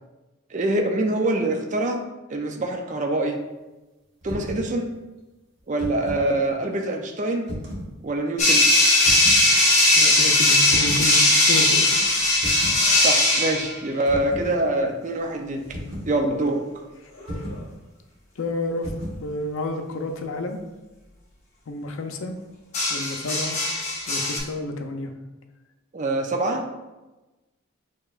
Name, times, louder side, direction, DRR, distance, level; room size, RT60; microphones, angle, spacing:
voice 1, 0.5-2.0 2.3-3.4 4.2-4.9 5.7-7.5 8.0-8.7 13.0-15.6 16.1-16.6 25.9-26.7, right 2 dB, 35° right, 3 dB, 0.4 m, -25 dB
sound 1, 4.2-4.7 5.6-6.3 7.4-7.9 9.0-9.4 10.7-11.1 12.4-12.8 14.1-14.5 15.7-16.1 17.3-17.7 18.8-19.2, equal, 65° right, 1.1 m, -34 dB
sound 2, 8.4-13.7 17.2-17.5 22.7-24.4, left 2 dB, 35° left, 0.8 m, -19 dB
voice 2, 10.0-12.0 18.4-18.9 19.2-20.6 21.7-22.3 22.9-23.6 24.1-25.1, left 2 dB, 80° left, 5 dB, 0.5 m, -30 dB
6.6 x 2.9 x 2.4 m, 1.1 s
head